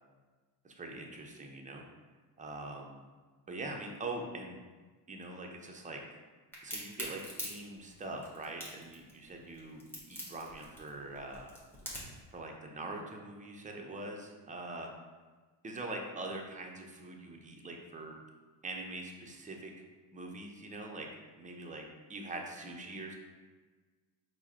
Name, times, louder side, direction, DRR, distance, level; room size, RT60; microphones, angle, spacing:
voice 1, 0.6-1.8 2.4-3.0 3.5-4.6 5.1-6.0 6.6-11.5 12.3-14.9 15.6-18.1 18.6-19.7 20.1-21.1 21.4-23.2, right 2 dB, 15° right, 1 dB, 0.6 m, -43 dB
Crack, 6.5-12.2, equal, 5° left, 1.5 m, -43 dB
4.7 x 2.1 x 4.2 m, 1.4 s
supercardioid pair, 80°, 49 cm